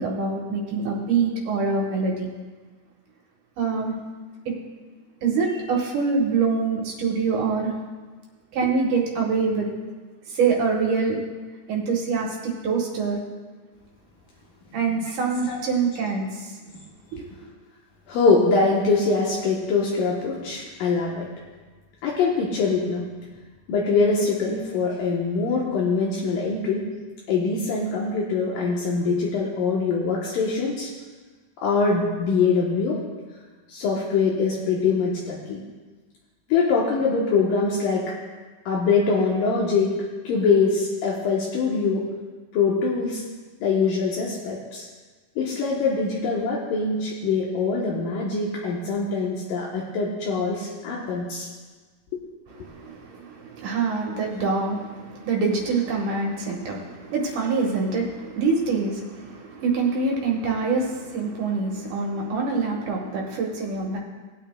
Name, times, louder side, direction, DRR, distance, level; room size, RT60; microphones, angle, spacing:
voice 1, 0.0-2.3 3.6-4.0 4.5-4.6 5.2-7.7 8.5-9.7 10.3-11.2 11.7-13.2 14.7-16.5 17.1-17.2 52.6-64.0, right 4 dB, 70° right, -1 dB, 2.6 m, -25 dB
voice 2, 15.4-16.1 18.1-21.3 22.0-23.1 23.7-26.9 27.3-30.9 31.6-33.0 33.7-35.6 36.5-38.1 38.7-40.0 40.2-42.1 42.5-43.2 43.6-44.9 45.4-51.5 52.1-52.2, left 4 dB, 80° left, -4 dB, 2.7 m, -23 dB
19.0 x 9.1 x 2.2 m, 1.4 s
omnidirectional pair, 3.9 m